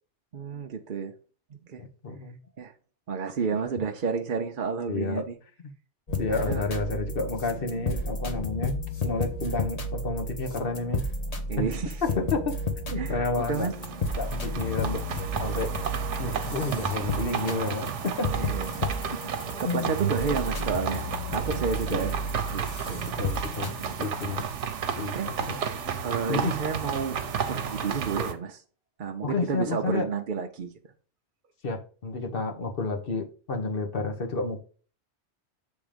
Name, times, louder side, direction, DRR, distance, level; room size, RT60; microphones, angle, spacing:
voice 1, 0.3-1.1 1.5-1.8 2.6-2.7 3.1-5.4 6.3-6.6 11.5-12.0 13.0-13.7 18.4-18.9 19.6-22.2 22.5-23.1 23.8-24.1 25.0-25.4 26.0-27.2 27.5-28.6 29.0-30.7, right 5 dB, 55° right, 0.8 m, -31 dB
voice 2, 1.8-2.4 4.9-5.2 5.6-5.7 6.2-11.0 12.2-12.6 12.9-13.7 14.2-15.0 15.4-15.7 16.2-18.3 19.6-20.4 21.9-22.1 23.2-24.4 24.9-25.6 26.3-26.5 29.2-30.1 31.6-34.6, left 3 dB, 55° left, 1.3 m, -31 dB
sound 1, 6.1-24.4, left 1 dB, 35° left, 0.9 m, -33 dB
sound 2, 13.4-28.3, right 7 dB, 85° right, 1.1 m, -32 dB
7.4 x 3.5 x 5.0 m
omnidirectional pair, 1.2 m